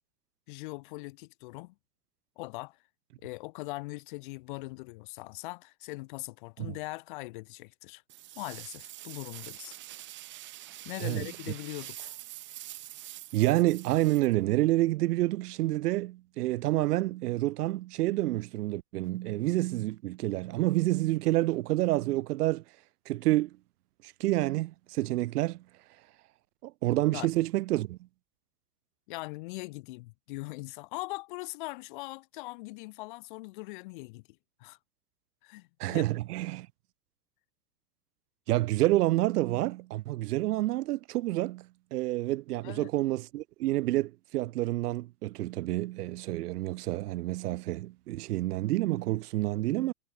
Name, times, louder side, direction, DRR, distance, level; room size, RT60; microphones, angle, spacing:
voice 1, 0.5-1.7 2.4-2.8 3.2-8.0 8.4-9.8 10.8-12.2 27.1-27.3 29.1-34.2 34.6-34.8 35.4-36.1 42.6-42.9, left 23 dB, 35° left, 0.4 m, -41 dB
sound 1, 8.1-14.8, right 15 dB, 25° right, 1.1 m, -45 dB
voice 2, 13.3-22.6 23.1-23.5 24.0-25.6 26.6-28.0 35.8-36.7 38.5-49.9, right 17 dB, 90° right, 0.8 m, -28 dB
supercardioid pair, 155°, 45 cm